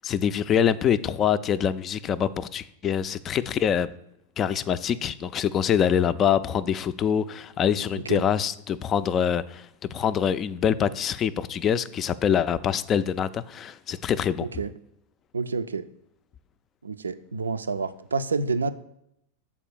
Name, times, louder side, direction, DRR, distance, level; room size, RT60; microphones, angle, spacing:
voice 1, 0.0-3.9 4.4-14.5, left 8 dB, 30° left, 15 dB, 0.4 m, -25 dB
voice 2, 14.4-14.7 15.3-15.9 16.8-18.7, right 4 dB, 75° right, 12 dB, 0.4 m, -28 dB
7.3 x 4.5 x 6.7 m, 0.78 s
figure-of-eight pair, 90°, 0 cm